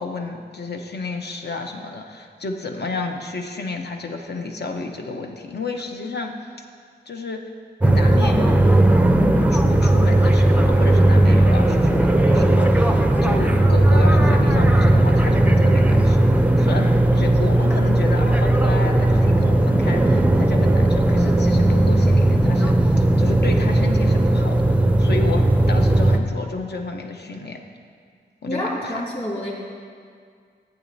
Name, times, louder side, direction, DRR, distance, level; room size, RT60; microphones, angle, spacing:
voice 1, 0.0-6.5 7.1-7.4 7.8-8.6 9.2-27.6 28.4-29.0, left 3 dB, 65° left, 3 dB, 0.8 m, -31 dB
sound 1, 7.8-26.2, right 1 dB, 10° right, 0.4 m, -16 dB
voice 2, 28.5-29.5, left 1 dB, 35° left, -5 dB, 2.5 m, -28 dB
14.5 x 8.1 x 2.7 m, 2.1 s
wide cardioid pair, 110°, 18 cm